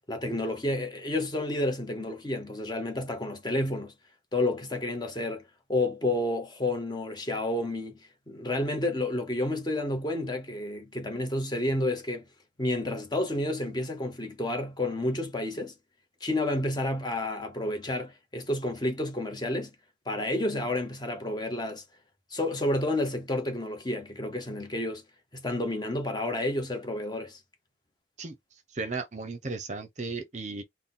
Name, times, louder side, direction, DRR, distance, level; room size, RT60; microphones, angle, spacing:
voice 1, 0.1-3.9 4.3-5.4 5.7-8.0 8.3-12.3 12.6-15.7 16.2-19.7 20.1-21.8 22.3-25.0 25.3-27.4, left 1 dB, 20° left, 0.8 m, -30 dB
voice 2, 28.7-30.6, right 3 dB, 35° right, 0.6 m, -35 dB
4.0 x 2.1 x 3.7 m
head